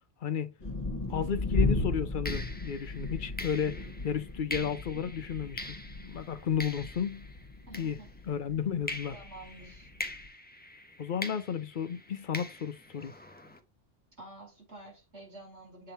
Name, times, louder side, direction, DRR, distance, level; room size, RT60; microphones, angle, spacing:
sound 1, 0.6-10.3, left 2 dB, 35° left, 1.4 m, -35 dB
voice 1, 1.1-5.8 6.0-7.3 7.8-8.0 8.3-9.1 11.0-13.1, left 8 dB, 50° left, 0.8 m, -33 dB
sound 2, 1.1-1.3 2.2-8.4 8.9-13.6, left 1 dB, 10° left, 0.5 m, -44 dB
voice 2, 7.7-8.1 9.1-9.9 14.2-15.9, right 2 dB, 85° right, 4.3 m, -49 dB
7.7 x 3.6 x 4.2 m
omnidirectional pair, 1.1 m